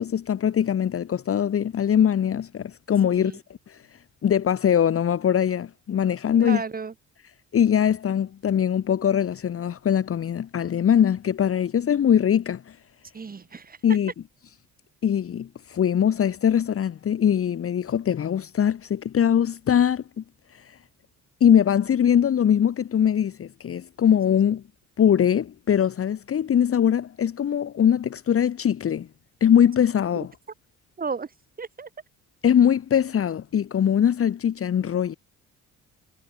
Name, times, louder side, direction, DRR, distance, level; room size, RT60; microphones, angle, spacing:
voice 1, 0.0-3.3 3.7-3.8 4.2-6.6 7.5-12.8 13.8-14.1 15.0-20.2 20.5-20.8 21.4-24.6 25.0-29.1 29.4-30.3 32.4-35.2, left 9 dB, 50° left, 1.3 m, -22 dB
voice 2, 6.4-6.9 13.1-13.8 30.2-30.3 31.0-31.3 31.6-31.9, right 5 dB, 30° right, 1.5 m, -33 dB
cardioid pair, 90°, 30 cm